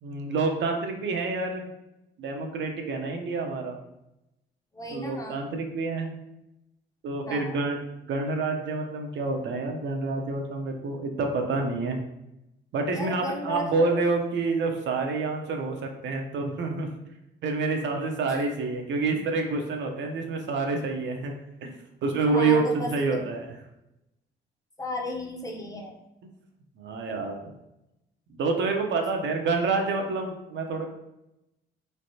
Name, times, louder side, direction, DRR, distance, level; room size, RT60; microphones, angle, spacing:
voice 1, 0.0-1.7 2.2-3.8 4.9-6.1 7.0-7.8 8.1-12.0 12.7-16.9 17.4-21.3 21.6-21.7 22.0-23.5 26.8-27.4 28.3-30.9, right 3 dB, 65° right, 3 dB, 0.7 m, -28 dB
voice 2, 4.7-5.4 7.3-7.6 12.9-14.0 18.3-18.4 22.3-23.2 24.8-25.9 29.6-29.9, left 1 dB, 15° left, 0 dB, 0.7 m, -35 dB
3.3 x 3.2 x 2.7 m, 0.89 s
cardioid pair, 90°, 20 cm